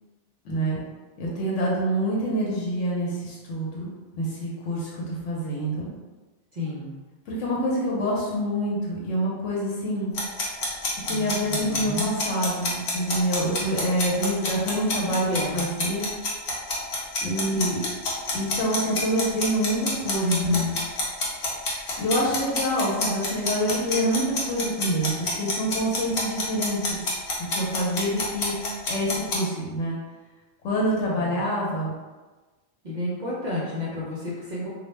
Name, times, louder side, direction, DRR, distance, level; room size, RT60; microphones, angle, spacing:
voice 1, 0.4-0.8 1.2-3.9 4.2-5.9 7.3-10.1 11.1-15.3 15.5-16.1 17.2-17.8 18.3-20.6 22.0-27.0 27.5-28.5 28.9-30.0 30.6-31.9, equal, 90° left, -4 dB, 1.0 m, -26 dB
voice 2, 6.5-7.0 11.1-12.1 15.3-15.6 17.2-17.6 20.2-20.7 31.1-31.4 32.8-34.7, left 2 dB, 60° right, -7 dB, 0.5 m, -30 dB
sound 1, 10.1-29.3, left 2 dB, 65° left, 0.9 m, -28 dB
2.3 x 2.0 x 3.1 m, 1.3 s
omnidirectional pair, 1.2 m